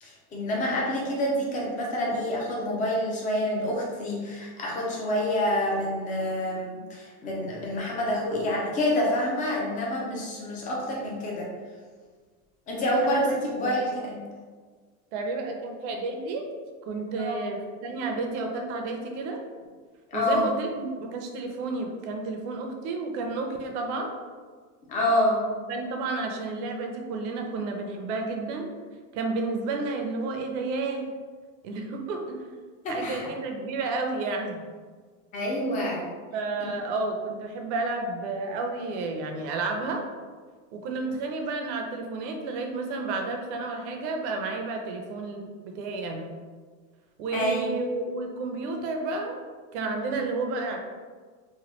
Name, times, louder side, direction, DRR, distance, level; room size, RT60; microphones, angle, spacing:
voice 1, 0.0-11.5 12.7-14.3 17.2-17.4 20.1-20.4 24.9-25.4 32.8-33.3 35.3-36.1 47.3-47.7, left 1 dB, 20° left, -2 dB, 0.4 m, -27 dB
voice 2, 13.0-13.8 15.1-16.5 16.9-19.4 20.1-24.1 25.7-28.7 29.1-31.1 31.6-32.6 32.9-34.6 36.3-40.0 40.7-46.3 47.2-49.4 49.7-50.8, right 3 dB, 60° right, 3 dB, 0.6 m, -31 dB
3.1 x 2.2 x 3.0 m, 1.5 s
supercardioid pair, 160°, 40 cm